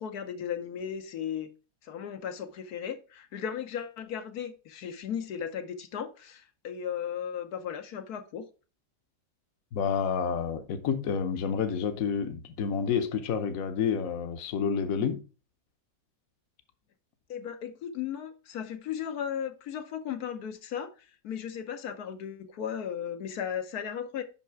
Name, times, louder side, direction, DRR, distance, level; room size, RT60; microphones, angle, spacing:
voice 1, 0.0-1.5 1.8-8.5 17.3-24.2, left 8 dB, 85° left, 1.4 m, -36 dB
voice 2, 9.7-15.2, left 6 dB, 70° left, 1.2 m, -29 dB
5.9 x 5.6 x 4.4 m
omnidirectional pair, 1.6 m